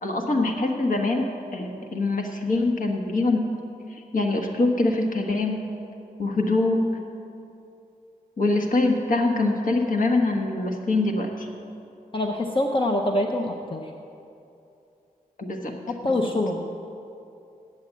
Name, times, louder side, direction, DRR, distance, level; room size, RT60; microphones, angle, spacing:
voice 1, 0.0-3.5 4.1-5.6 6.2-6.8 8.4-11.5 15.4-15.7, left 2 dB, 60° left, 2 dB, 1.3 m, -24 dB
voice 2, 12.1-13.8 16.0-16.6, left 1 dB, 35° left, 2 dB, 0.6 m, -24 dB
8.7 x 7.6 x 8.3 m, 2.7 s
wide cardioid pair, 150°, 15 cm